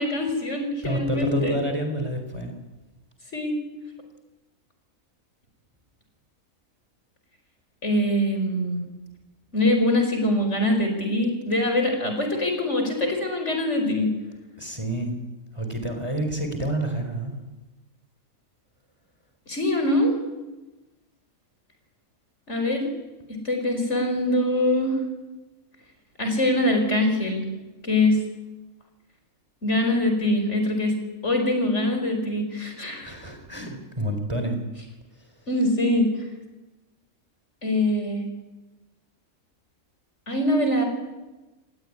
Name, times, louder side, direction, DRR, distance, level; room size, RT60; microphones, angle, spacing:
voice 1, 0.0-1.6 3.3-3.6 7.8-8.8 9.5-14.1 19.5-20.1 22.5-22.9 23.3-25.0 26.2-27.5 27.8-28.2 29.6-30.9 31.2-33.1 35.5-36.1 37.6-38.3 40.3-40.8, left 1 dB, 55° left, 4 dB, 4.9 m, -23 dB
voice 2, 0.8-2.5 14.6-15.1 15.5-17.3 33.0-34.6, right 1 dB, 20° right, 5 dB, 4.2 m, -28 dB
28.5 x 19.0 x 9.8 m, 1.1 s
omnidirectional pair, 1.5 m